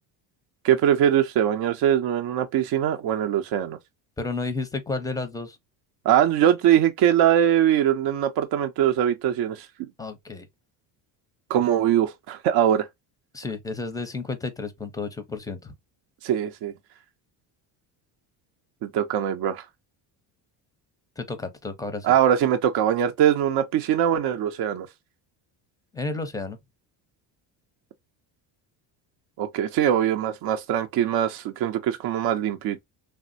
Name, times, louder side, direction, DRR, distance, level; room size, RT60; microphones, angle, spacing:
voice 1, 0.6-3.8 6.1-9.9 11.5-12.9 16.2-16.7 18.8-19.6 22.0-24.9 29.4-32.8, right 10 dB, 60° right, 0.5 m, -22 dB
voice 2, 4.2-5.6 10.0-10.5 13.3-15.7 21.2-22.1 25.9-26.6, left 3 dB, 10° left, 0.5 m, -31 dB
3.3 x 2.1 x 2.5 m
supercardioid pair, 95°, 45 cm